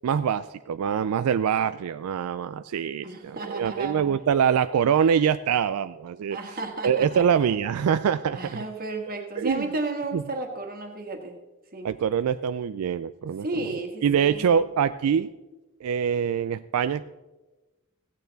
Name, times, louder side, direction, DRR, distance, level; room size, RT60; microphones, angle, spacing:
voice 1, 0.0-6.4 6.8-8.6 9.4-9.7 10.1-10.2 11.8-13.7 14.0-15.3 15.8-17.0, right 7 dB, 85° right, 13 dB, 0.3 m, -24 dB
voice 2, 3.0-4.0 6.3-7.2 8.3-11.3 11.7-11.9 13.4-14.5, right 2 dB, 40° right, 4 dB, 1.6 m, -33 dB
16.0 x 9.2 x 4.0 m, 1.1 s
head